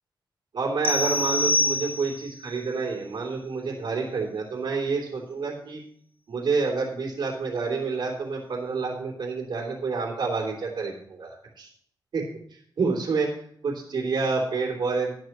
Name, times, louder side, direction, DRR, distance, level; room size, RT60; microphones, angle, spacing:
voice 1, 0.5-5.8 6.3-11.7 12.1-12.2 12.5-13.3 13.6-15.1, right 4 dB, 80° right, -3 dB, 2.9 m, -28 dB
sound 1, 0.8-2.4, left 1 dB, 25° left, 0.5 m, -25 dB
18.0 x 9.2 x 3.0 m, 0.63 s
wide cardioid pair, 130°, 8 cm